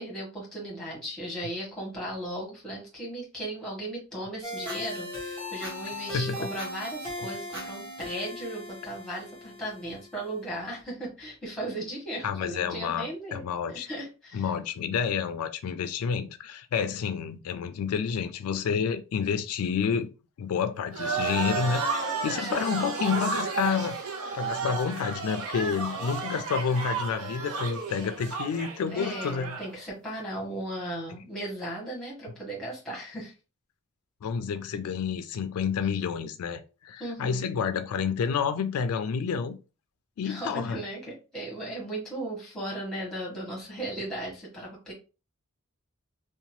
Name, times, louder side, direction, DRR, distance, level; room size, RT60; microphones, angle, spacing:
voice 1, 0.0-13.4 13.7-14.4 22.4-22.9 28.9-33.3 37.0-37.5 40.2-44.9, right 1 dB, ahead, 1.2 m, -36 dB
sound 1, 4.4-10.4, left 1 dB, 25° right, 1.3 m, -38 dB
voice 2, 12.2-13.9 14.3-20.1 20.4-24.0 24.3-29.6 34.2-39.6 40.2-40.8, left 6 dB, 85° left, 0.3 m, -29 dB
sound 2, 20.9-29.7, right 4 dB, 80° right, 0.6 m, -32 dB
2.8 x 2.2 x 2.9 m
head